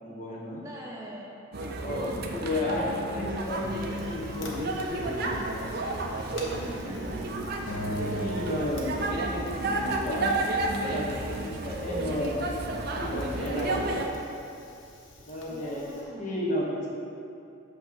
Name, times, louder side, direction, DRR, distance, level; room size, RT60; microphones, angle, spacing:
voice 1, 0.0-0.6 1.8-5.8 6.4-7.0 7.8-10.3 10.8-12.4 13.0-14.0 15.3-15.9 16.2-16.9, left 1 dB, 35° left, -4 dB, 1.1 m, -33 dB
voice 2, 0.6-1.4 2.0-2.8 6.8-7.3 7.9-8.3 11.5-11.9 15.5-16.4, equal, 15° right, -4 dB, 0.9 m, -44 dB
sound 1, 1.5-14.1, right 2 dB, 45° right, 0.6 m, -32 dB
Fire, 3.4-16.0, left 1 dB, 65° left, 1.0 m, -48 dB
Acoustic guitar, 7.7-10.1, equal, 80° left, 1.2 m, -36 dB
8.4 x 3.3 x 6.0 m, 2.6 s
head